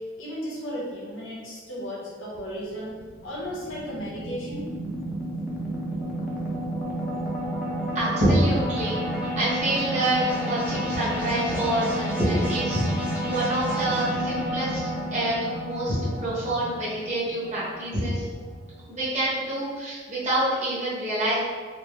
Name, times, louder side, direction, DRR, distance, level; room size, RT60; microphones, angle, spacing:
voice 1, 0.0-3.0 3.2-4.7, equal, 85° left, -5 dB, 1.2 m, -34 dB
sound 1, 2.3-18.7, equal, 5° right, 0.6 m, -31 dB
voice 2, 7.9-9.0 9.4-14.8 15.1-15.3 15.6-18.2 18.9-21.4, right 1 dB, 35° right, -9 dB, 1.4 m, -26 dB
4.2 x 2.2 x 3.2 m, 1.6 s
head